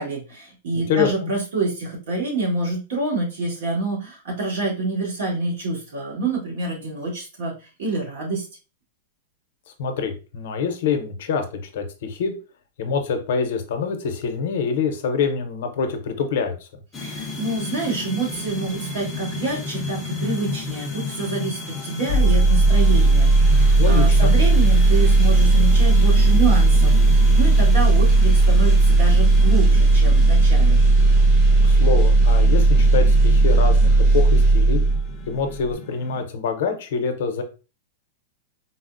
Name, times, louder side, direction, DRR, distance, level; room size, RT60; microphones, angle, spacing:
voice 1, 0.0-7.5 7.8-8.4 17.0-30.8, right 3 dB, 70° right, -3 dB, 1.6 m, -27 dB
voice 2, 0.7-1.3 9.8-12.3 12.8-16.7 23.8-24.3 31.6-34.8 35.3-37.4, left 6 dB, 60° left, 6 dB, 0.6 m, -25 dB
sound 1, 16.9-36.2, left 3 dB, 10° left, 0.4 m, -33 dB
sound 2, 22.1-35.2 35.5-35.7, right 2 dB, 25° right, 0.7 m, -15 dB
3.9 x 2.0 x 2.4 m, 0.32 s
supercardioid pair, 170°, 0 cm